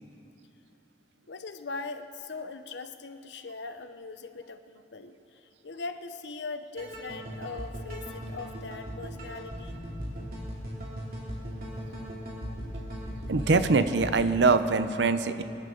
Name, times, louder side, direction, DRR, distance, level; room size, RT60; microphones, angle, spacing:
voice 1, 1.3-9.7 12.5-12.6, left 4 dB, 90° left, 9 dB, 0.8 m, -40 dB
sound 1, 6.8-14.2, equal, 55° right, 3.1 m, -38 dB
voice 2, 13.3-15.4, right 4 dB, 85° right, 11 dB, 0.7 m, -23 dB
24.0 x 11.0 x 3.9 m, 2.7 s
head